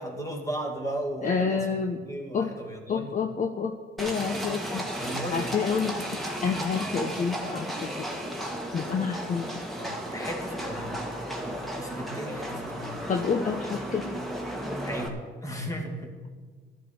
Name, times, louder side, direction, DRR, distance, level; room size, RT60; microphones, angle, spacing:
voice 1, 0.0-1.7 1.9-3.2 5.0-5.4 9.8-11.0 11.7-13.0 14.8-16.1, right 1 dB, 15° left, 1 dB, 2.5 m, -35 dB
voice 2, 1.2-2.0 2.3-2.5 2.9-4.9 5.3-8.1 8.7-9.5 13.1-14.2, left 5 dB, 40° left, 5 dB, 0.8 m, -29 dB
Livestock farm animals working animals, 4.0-15.1, equal, ahead, 1.9 m, -34 dB
13.5 x 12.5 x 4.3 m, 1.5 s
cardioid pair, 90°, 20 cm